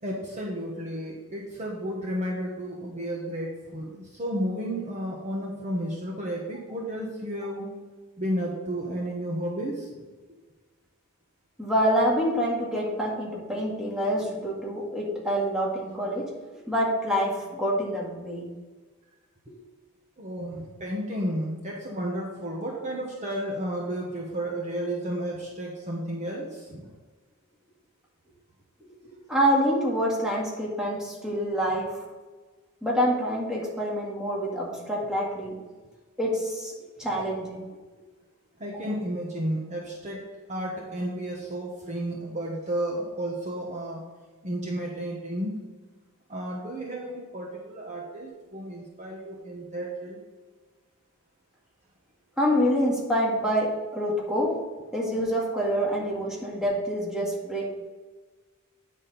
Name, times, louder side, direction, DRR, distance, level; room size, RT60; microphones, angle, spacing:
voice 1, 0.0-7.7 8.2-10.0 12.7-12.8 13.5-13.6 20.2-26.9 38.6-44.0 44.4-45.5 46.3-50.2, right 1 dB, 30° right, -2 dB, 1.1 m, -32 dB
voice 2, 11.6-16.3 16.6-18.5 19.5-19.6 29.3-32.0 32.8-35.6 36.2-36.7 37.0-37.7 38.7-38.8 52.4-54.6 54.9-57.9, equal, 5° right, -4 dB, 1.9 m, -26 dB
9.6 x 4.3 x 5.2 m, 1.3 s
head